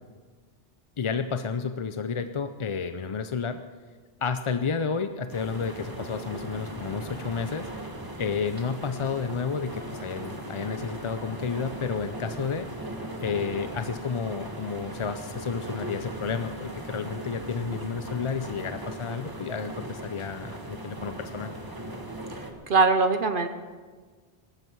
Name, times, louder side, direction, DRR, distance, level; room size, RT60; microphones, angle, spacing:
voice 1, 1.0-3.6 4.2-7.7 8.2-12.7 13.2-21.5, left 5 dB, 40° left, 9 dB, 0.5 m, -31 dB
sound 1, 5.3-22.5, right 1 dB, 20° right, 1.6 m, -38 dB
voice 2, 22.7-23.5, right 4 dB, 60° right, 9 dB, 0.9 m, -21 dB
19.0 x 13.5 x 4.7 m, 1.5 s
omnidirectional pair, 1.0 m